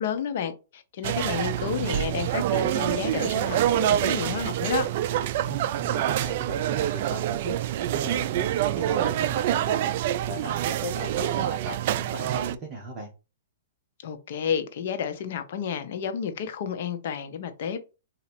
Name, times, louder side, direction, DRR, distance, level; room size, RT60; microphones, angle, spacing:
voice 1, 0.0-4.9 14.0-17.8, left 7 dB, 55° left, 0.8 m, -31 dB
sound 1, 1.0-12.5, right 12 dB, 50° right, 0.3 m, -26 dB
voice 2, 5.5-8.5 8.7-9.9 10.2-13.1, right 2 dB, 25° right, 1.1 m, -36 dB
4.1 x 2.7 x 4.4 m
hypercardioid pair, 145°, 0 cm